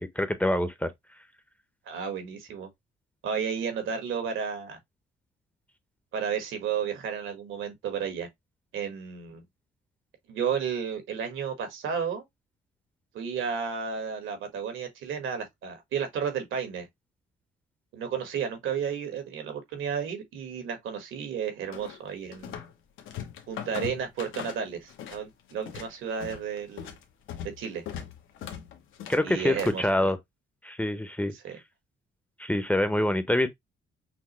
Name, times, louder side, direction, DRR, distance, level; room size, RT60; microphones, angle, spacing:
voice 1, 0.2-0.9 29.1-30.2 30.6-31.3 32.4-33.5, left 1 dB, 5° left, 0.7 m, -25 dB
voice 2, 1.9-2.7 3.2-4.8 6.1-8.3 8.7-9.4 10.3-12.2 13.1-16.9 17.9-22.6 23.5-26.9 27.6-27.8 29.2-30.0 31.3-31.6, right 7 dB, 80° right, 1.6 m, -32 dB
sound 1, 21.7-22.7 23.0-25.2 25.5-29.9, left 9 dB, 80° left, 1.0 m, -40 dB
5.9 x 2.1 x 3.1 m
cardioid pair, 90°, 20 cm